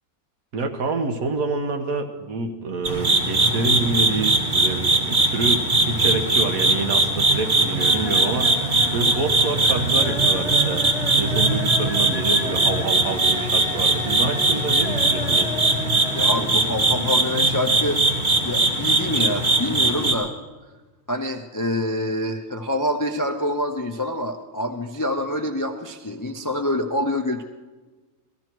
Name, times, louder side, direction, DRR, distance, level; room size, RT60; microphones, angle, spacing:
voice 1, 0.5-8.5 8.9-10.8 11.2-15.5, right 3 dB, 75° right, 5 dB, 1.6 m, -27 dB
sound 1, 2.8-20.1, right 2 dB, 35° right, 1.4 m, -20 dB
sound 2, 5.7-6.3 6.6-7.1 7.4-16.5 16.8-16.9 17.2-17.3, left 1 dB, 5° right, 2.4 m, -34 dB
voice 2, 16.1-18.0 18.4-20.3 21.1-27.4, left 1 dB, 30° left, 5 dB, 0.3 m, -26 dB
17.5 x 14.0 x 4.6 m, 1.3 s
omnidirectional pair, 1.5 m